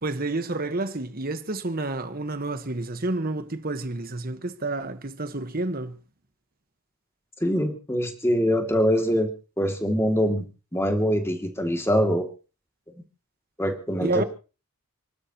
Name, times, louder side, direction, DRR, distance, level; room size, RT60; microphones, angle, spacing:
voice 1, 0.0-6.0 14.0-14.2, right 2 dB, 40° right, 1.4 m, -29 dB
voice 2, 7.4-9.3 9.6-10.4 10.7-12.3 13.6-14.2, equal, 10° left, 2.5 m, -23 dB
29.0 x 12.5 x 3.0 m
head